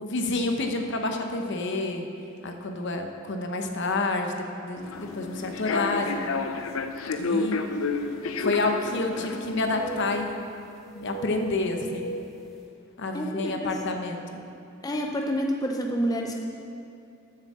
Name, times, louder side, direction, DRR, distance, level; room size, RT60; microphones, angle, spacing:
voice 1, 0.0-2.1 2.4-4.4 4.6-6.2 7.2-7.6 8.4-10.5 10.9-12.2 13.0-14.4, left 2 dB, 60° left, 4 dB, 0.8 m, -29 dB
Human voice / Subway metro underground, 4.8-10.2, left 4 dB, 85° left, 0.6 m, -31 dB
sound 1, 5.3-5.4 6.2-6.3 8.1-9.4 9.7-10.5 10.9-12.3, right 2 dB, ahead, 1.5 m, -39 dB
voice 2, 13.1-13.7 14.8-16.3, equal, 20° left, 0 dB, 0.5 m, -28 dB
7.2 x 6.7 x 7.3 m, 2.7 s
head